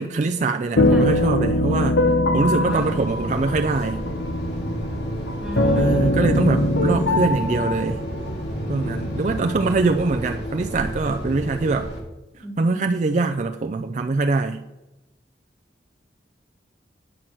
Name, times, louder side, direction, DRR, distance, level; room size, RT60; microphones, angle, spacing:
voice 1, 0.0-2.0 2.3-4.0 5.8-8.0 8.7-11.9 12.6-14.6, right 3 dB, 40° right, 4 dB, 0.4 m, -23 dB
sound 1, 0.8-10.4, left 1 dB, 80° left, 1.0 m, -23 dB
voice 2, 2.4-3.0 5.4-6.1 12.4-12.9, right 1 dB, 5° right, 1 dB, 1.3 m, -33 dB
sound 2, 2.7-12.0, equal, 60° left, 2.8 m, -32 dB
10.0 x 4.6 x 7.5 m, 1.0 s
head